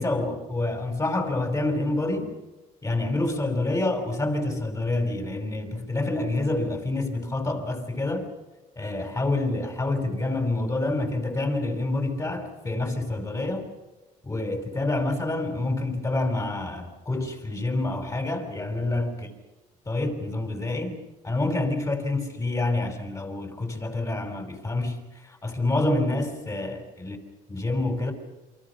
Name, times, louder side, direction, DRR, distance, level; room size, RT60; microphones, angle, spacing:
voice 1, 0.0-2.3 2.8-8.3 8.8-13.7 14.2-19.1 19.9-21.0 21.2-27.2 27.5-28.1, left 2 dB, 20° left, 5.4 m, -27 dB
28.5 x 24.0 x 6.0 m
cardioid pair, 90°, 15 cm